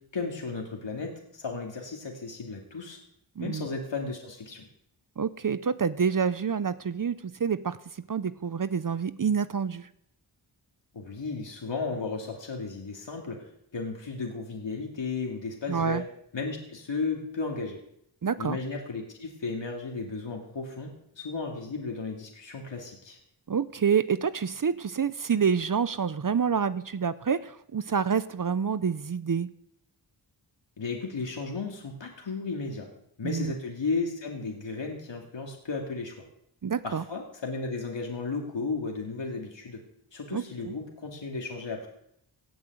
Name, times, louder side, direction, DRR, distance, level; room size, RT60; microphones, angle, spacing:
voice 1, 0.1-3.0 3.4-4.7 10.9-16.0 16.3-17.8 18.4-23.2 30.8-32.9 33.2-36.2 36.8-39.8 40.1-41.9, left 4 dB, 65° left, 0 dB, 2.5 m, -34 dB
voice 2, 3.4-3.7 5.2-7.8 8.1-9.9 15.7-16.0 18.2-18.6 23.5-29.5 33.2-33.5 36.6-37.0 40.3-40.7, right 6 dB, 45° right, 15 dB, 0.7 m, -27 dB
17.5 x 6.2 x 7.9 m, 0.74 s
cardioid pair, 50°, 47 cm